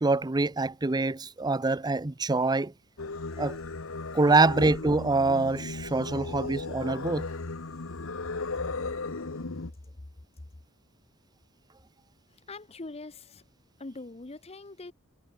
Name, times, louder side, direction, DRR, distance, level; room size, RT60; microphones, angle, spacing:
voice 1, 0.0-2.7 3.4-3.6 4.1-7.3, right 3 dB, 20° right, 0.6 m, -25 dB
Singing, 3.0-9.7, left 3 dB, 75° left, 1.2 m, -36 dB
voice 2, 12.5-13.4 13.8-14.9, left 2 dB, 30° left, 0.9 m, -42 dB
head